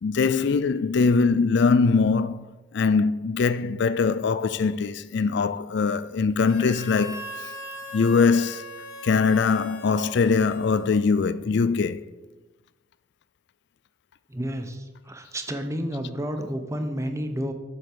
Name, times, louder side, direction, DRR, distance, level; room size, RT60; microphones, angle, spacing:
voice 1, 0.0-2.5 2.7-7.5 7.9-8.7 9.0-12.0, left 4 dB, 60° left, 0.4 m, -22 dB
Harmonica, 6.4-11.2, left 1 dB, 80° left, 2.1 m, -40 dB
voice 2, 14.3-17.5, equal, 15° right, 1.0 m, -31 dB
8.1 x 7.8 x 6.8 m
head